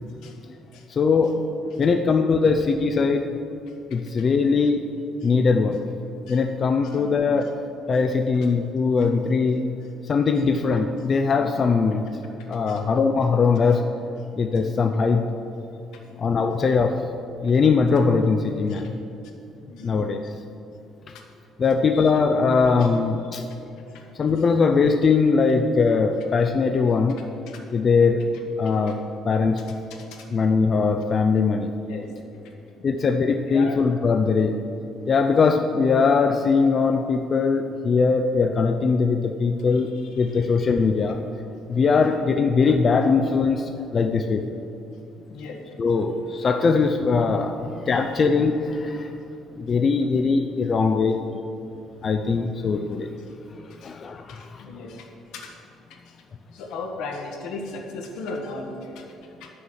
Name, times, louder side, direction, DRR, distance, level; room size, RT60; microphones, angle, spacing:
voice 1, 0.2-1.4 1.7-1.9 2.4-2.5 4.1-4.3 5.2-5.3 6.3-6.4 6.8-7.1 7.4-7.5 12.4-12.8 16.7-16.8 17.4-17.6 18.7-18.9 19.6-20.0 21.1-21.2 21.9-22.1 22.7-22.9 23.3-23.4 23.9-24.1 27.5-27.6 28.0-28.3 28.9-29.0 30.1-30.3 31.8-32.1 32.8-33.1 33.4-33.8 39.6-40.6 42.0-42.3 45.3-45.6 47.9-48.3 51.7-51.8 53.2-53.3 53.7-54.0 54.3-55.1 55.3-55.6 56.0-56.2 56.5-59.5, left 3 dB, 85° left, 1 dB, 1.5 m, -39 dB
voice 2, 0.9-1.4 1.8-3.2 3.9-4.8 5.2-5.8 6.3-7.5 7.9-9.7 10.0-12.0 12.5-13.9 14.4-15.2 16.2-17.0 17.4-19.0 19.8-20.3 21.6-23.4 24.2-27.2 27.7-28.2 28.6-29.6 30.3-31.7 32.8-34.5 35.1-39.9 40.1-41.2 41.7-44.4 45.8-49.1 49.6-51.4 52.0-53.1 53.6-54.6, left 4 dB, 35° left, 5 dB, 0.4 m, -21 dB
9.0 x 7.0 x 6.4 m, 2.7 s
cardioid pair, 135°, 0 cm